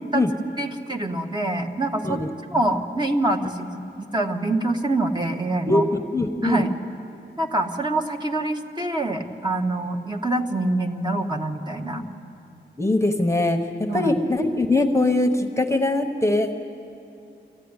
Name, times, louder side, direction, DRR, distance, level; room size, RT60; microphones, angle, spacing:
voice 1, 0.6-2.2 2.5-5.9 6.4-6.7 7.4-12.0 13.9-14.1, right 2 dB, 20° right, 2 dB, 1.5 m, -25 dB
voice 2, 5.7-6.6 12.0-12.1 12.8-16.5, left 2 dB, 15° left, 5 dB, 1.2 m, -22 dB
25.5 x 15.0 x 9.8 m, 2.7 s
wide cardioid pair, 70°, 20 cm